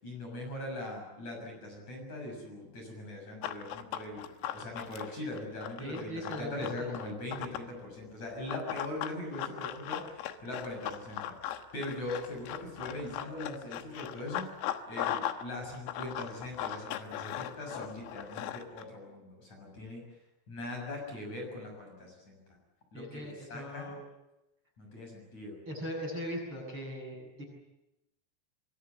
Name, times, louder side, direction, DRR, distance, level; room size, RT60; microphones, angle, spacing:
voice 1, 0.0-4.2 4.5-20.0 20.5-22.4 22.9-23.9 24.8-25.6, left 1 dB, 35° left, 1 dB, 7.9 m, -41 dB
Run, 3.4-7.7 8.5-15.4 15.7-18.8, left 12 dB, 85° left, 4.0 m, -38 dB
voice 2, 5.8-6.9 22.9-24.0 25.7-27.4, equal, 25° right, 0 dB, 7.6 m, -39 dB
25.0 x 23.5 x 8.3 m, 0.92 s
omnidirectional pair, 5.9 m